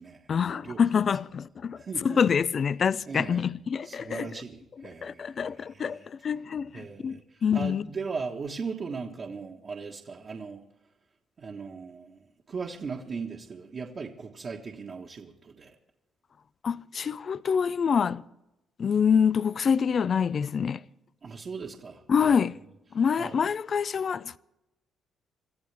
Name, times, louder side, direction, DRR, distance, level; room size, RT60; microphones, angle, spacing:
voice 1, 0.3-4.3 5.0-7.9 16.6-18.2 18.8-20.8 22.1-22.5 22.9-24.4, left 7 dB, 50° left, 0.5 m, -26 dB
voice 2, 1.8-2.2 3.1-3.4 3.8-6.1 6.7-10.6 11.4-12.2 12.5-15.7 21.2-22.5 23.2-23.4, right 5 dB, 45° right, 1.5 m, -38 dB
26.0 x 14.0 x 3.5 m
cardioid pair, 90°, 0 cm